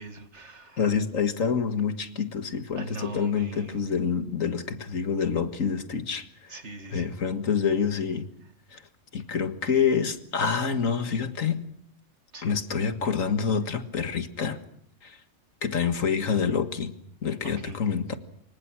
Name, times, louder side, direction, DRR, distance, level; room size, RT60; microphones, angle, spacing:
voice 1, 0.0-0.8 2.8-3.8 6.5-7.2 12.3-12.6 17.4-17.8, right 2 dB, 55° right, 2.4 m, -40 dB
voice 2, 0.8-6.6 6.9-8.3 8.7-8.8 9.1-11.7 12.4-14.6 15.0-15.2 15.6-16.9 17.2-18.2, left 6 dB, 70° left, 2.0 m, -27 dB
26.5 x 25.0 x 6.2 m
omnidirectional pair, 1.4 m